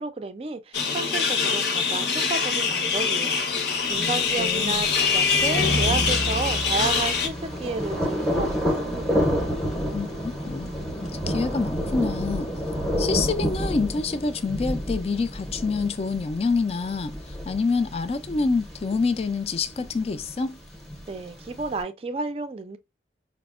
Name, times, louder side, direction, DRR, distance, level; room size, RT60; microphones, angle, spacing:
voice 1, 0.0-9.4 21.1-22.8, right 3 dB, 35° right, 0.4 m, -32 dB
sound 1, 0.7-7.3, left 5 dB, 65° left, 0.7 m, -25 dB
Vehicle horn car horn honking, 3.4-12.4, left 3 dB, 85° left, 1.1 m, -30 dB
Thunder, 3.8-21.8, equal, ahead, 0.7 m, -31 dB
voice 2, 4.0-4.8 9.9-10.7 11.0-12.5 13.0-20.6, left 4 dB, 35° left, 0.3 m, -27 dB
5.0 x 2.0 x 2.4 m
head